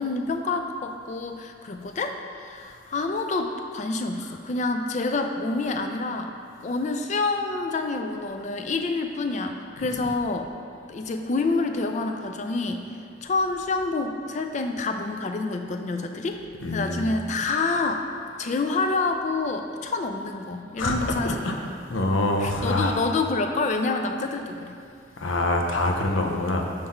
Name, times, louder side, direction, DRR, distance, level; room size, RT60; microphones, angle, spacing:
voice 1, 0.0-6.3 6.6-10.5 10.9-12.8 13.2-16.4 16.7-18.0 18.4-21.7 22.4-24.7, left 3 dB, 40° left, 5 dB, 0.3 m, -27 dB
voice 2, 16.6-17.0 20.8-21.0 21.2-21.5 21.9-23.0 25.2-26.7, left 2 dB, 90° left, 2 dB, 0.6 m, -25 dB
5.6 x 3.3 x 5.5 m, 2.3 s
head